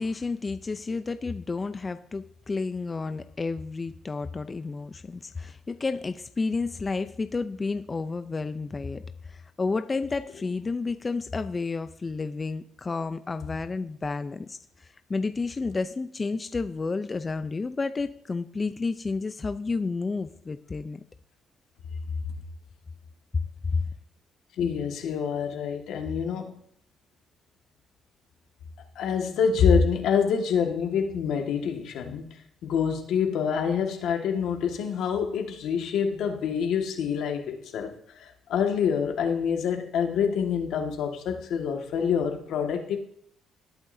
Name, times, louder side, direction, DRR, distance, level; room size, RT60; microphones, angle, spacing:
voice 1, 0.0-21.0 23.3-23.8, left 4 dB, 30° left, 10 dB, 0.6 m, -31 dB
voice 2, 24.6-26.5 29.0-32.3 32.6-37.9 38.2-43.0, left 7 dB, 80° left, 3 dB, 1.9 m, -26 dB
18.5 x 8.7 x 2.8 m, 0.69 s
cardioid pair, 90°, 0 cm